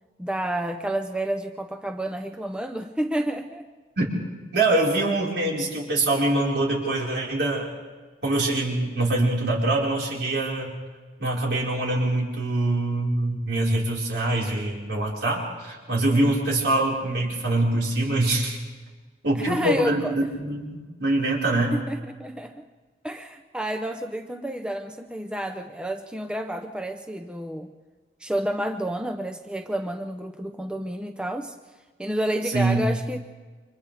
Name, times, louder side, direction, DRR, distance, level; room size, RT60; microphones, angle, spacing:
voice 1, 0.2-3.7 19.3-20.1 21.7-22.7 23.0-27.7 28.2-31.5 32.0-33.2, right 1 dB, 5° right, 5 dB, 0.7 m, -30 dB
voice 2, 4.5-7.7 8.2-10.7 11.2-18.6 19.2-21.7 32.5-32.8, right 2 dB, 75° right, -3 dB, 5.0 m, -24 dB
30.0 x 25.0 x 3.5 m, 1.3 s
head